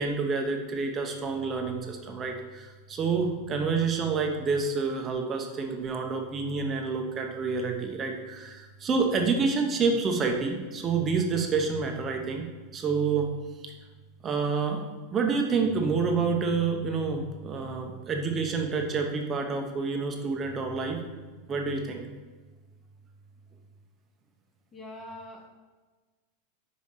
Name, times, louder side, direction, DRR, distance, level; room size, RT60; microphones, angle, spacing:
voice 1, 0.0-12.5 12.7-13.3 13.6-13.7 14.2-14.8 15.1-21.0 21.5-22.0, right 4 dB, 20° right, 3 dB, 0.8 m, -28 dB
voice 2, 24.7-25.5, left 1 dB, 15° left, 3 dB, 0.7 m, -43 dB
5.4 x 5.2 x 6.5 m, 1.3 s
supercardioid pair, 170°, 0 cm